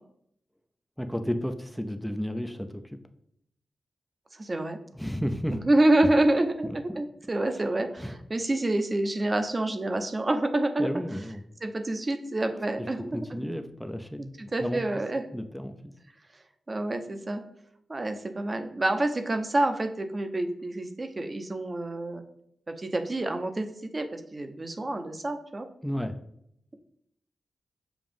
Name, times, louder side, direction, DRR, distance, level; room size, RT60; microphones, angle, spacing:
voice 1, 1.0-2.8 4.9-5.6 6.6-6.8 8.0-8.2 10.8-11.4 13.1-14.3 14.6-14.8 15.3-15.7 25.8-26.2, equal, ahead, 7 dB, 0.6 m, -32 dB
voice 2, 4.4-4.8 5.5-10.9 11.6-13.3 14.4-15.2 16.7-17.4 17.9-22.2 22.8-23.7 23.9-25.7, right 2 dB, 35° right, 6 dB, 0.9 m, -27 dB
7.1 x 2.5 x 5.3 m, 0.72 s
cardioid pair, 60°, 0 cm